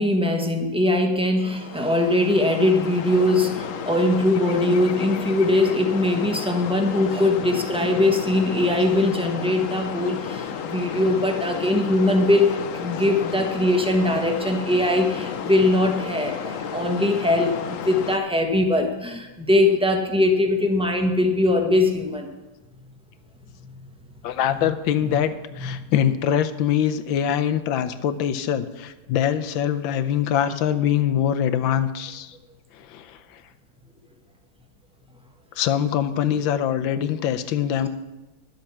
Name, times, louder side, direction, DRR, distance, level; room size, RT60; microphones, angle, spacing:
voice 1, 0.0-22.3, left 1 dB, 5° right, 3 dB, 0.8 m, -21 dB
sound 1, 1.5-18.2, left 7 dB, 60° left, 0.9 m, -32 dB
voice 2, 24.2-32.3 32.8-33.4 35.6-37.9, left 9 dB, 90° left, 10 dB, 1.5 m, -23 dB
11.5 x 7.9 x 7.2 m, 1.1 s
omnidirectional pair, 2.1 m